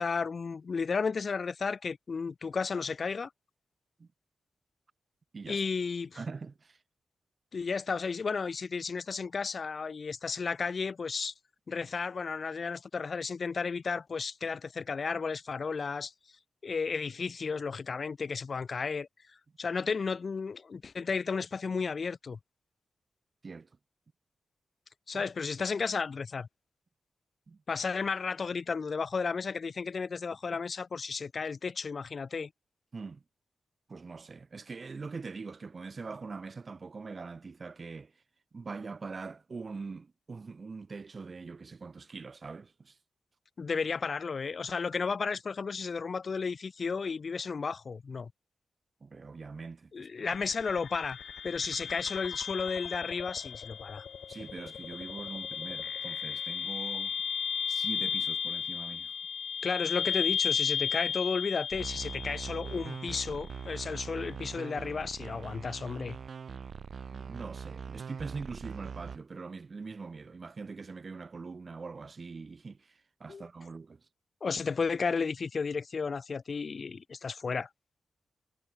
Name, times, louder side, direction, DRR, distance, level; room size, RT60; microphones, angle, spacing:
voice 1, 0.0-3.3 5.5-6.2 7.5-11.3 11.7-16.1 16.6-19.1 19.6-22.4 25.1-26.5 27.7-32.5 43.6-48.3 49.9-51.2 51.4-54.1 59.6-66.2 73.3-73.5 74.4-77.7, left 5 dB, 45° left, 1.6 m, -33 dB
voice 2, 6.1-6.8 23.4-23.7 25.1-25.3 27.5-27.6 32.9-33.2 33.9-38.1 38.5-43.0 49.0-50.4 54.3-57.2 57.7-59.1 67.1-74.0, right 4 dB, 40° right, 4.8 m, -43 dB
sound 1, 50.3-63.3, left 7 dB, 75° left, 2.7 m, -35 dB
sound 2, 61.7-69.2, right 6 dB, 60° right, 2.5 m, -42 dB
wide cardioid pair, 130°, 0 cm